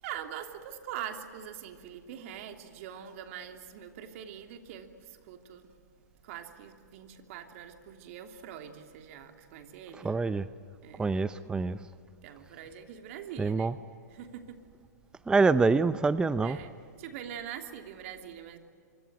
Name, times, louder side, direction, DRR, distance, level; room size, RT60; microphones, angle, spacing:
voice 1, 0.0-5.7 6.2-10.1 10.8-11.0 12.2-13.8 14.1-14.6 16.4-16.7 17.0-18.6, right 9 dB, 50° right, 5 dB, 3.0 m, -43 dB
voice 2, 10.0-10.5 11.0-11.9 13.4-13.7 15.3-16.6, right 4 dB, 10° right, 14 dB, 0.6 m, -26 dB
26.0 x 24.5 x 9.5 m, 2.3 s
hypercardioid pair, 115°, 9 cm